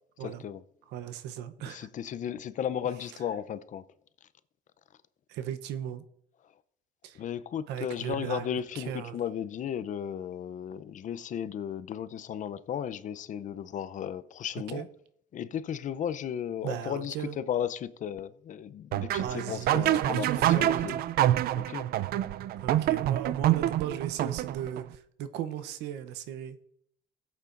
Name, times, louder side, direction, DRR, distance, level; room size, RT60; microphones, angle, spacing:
voice 1, 0.2-0.6 1.7-3.8 7.1-14.8 15.3-21.0 21.6-21.9, left 9 dB, 50° left, 0.6 m, -35 dB
voice 2, 0.9-1.9 5.3-6.0 7.0-7.2 7.7-8.5 8.7-9.2 14.7-14.9 16.6-17.4 19.2-21.0 22.6-26.6, right 10 dB, 85° right, 0.8 m, -36 dB
sound 1, 18.9-24.8, right 13 dB, 65° right, 0.4 m, -26 dB
16.0 x 8.3 x 2.5 m
cardioid pair, 110°, 17 cm